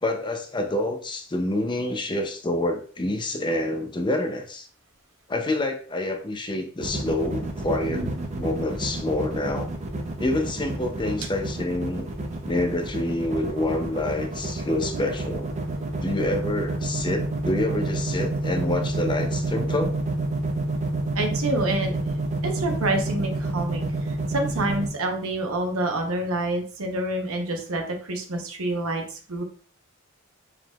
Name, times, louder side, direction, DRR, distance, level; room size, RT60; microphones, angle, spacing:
voice 1, 0.0-4.7 5.3-8.1 8.4-9.7 10.2-12.1 12.4-15.5 16.0-20.0, left 1 dB, 20° left, 5 dB, 0.5 m, -27 dB
sound 1, 6.8-24.9, right 2 dB, 30° right, 0.6 m, -29 dB
voice 2, 7.9-8.5 14.9-15.1 21.1-22.0 22.4-29.0 29.3-29.4, right 1 dB, 75° right, 3 dB, 0.9 m, -28 dB
4.7 x 3.6 x 2.3 m, 0.41 s
head